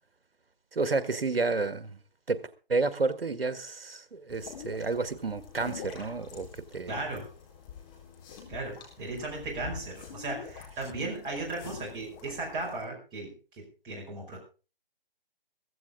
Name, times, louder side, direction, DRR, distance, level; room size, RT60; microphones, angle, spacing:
voice 1, 0.7-2.0 2.3-2.4 2.7-6.5 6.7-7.0, right 3 dB, 75° right, 1.7 m, -30 dB
sound 1, 4.3-12.8, left 7 dB, 25° left, 4.1 m, -46 dB
voice 2, 6.9-7.3 8.5-14.4, right 2 dB, 15° right, 5.2 m, -36 dB
15.5 x 15.5 x 3.7 m
figure-of-eight pair, 150°, 29 cm